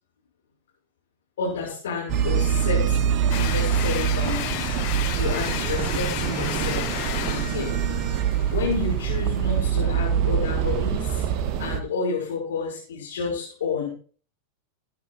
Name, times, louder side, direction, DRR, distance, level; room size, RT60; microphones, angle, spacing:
voice 1, 1.4-3.0 3.3-7.7 8.5-11.3 11.6-13.9, left 4 dB, 60° left, -7 dB, 6.5 m, -30 dB
sound 1, 2.1-11.8, right 8 dB, 35° right, 1.0 m, -24 dB
sound 2, 3.3-9.7, left 19 dB, 45° left, 0.5 m, -33 dB
21.5 x 9.6 x 2.6 m, 0.43 s
figure-of-eight pair, 90°, 0 cm